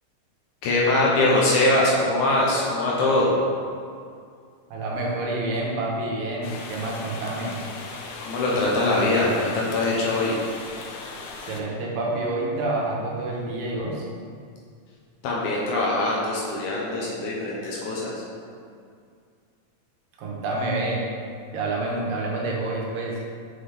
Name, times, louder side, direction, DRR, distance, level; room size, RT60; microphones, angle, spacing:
voice 1, 0.6-3.3 8.3-10.4 15.2-18.2, left 2 dB, 70° left, -4 dB, 2.0 m, -22 dB
voice 2, 4.7-7.6 11.4-14.0 20.2-21.1 21.5-23.2, right 2 dB, 80° right, -2 dB, 2.5 m, -28 dB
sound 1, 6.4-11.6, left 3 dB, 85° left, 1.7 m, -38 dB
5.9 x 5.6 x 3.3 m, 2.2 s
omnidirectional pair, 4.0 m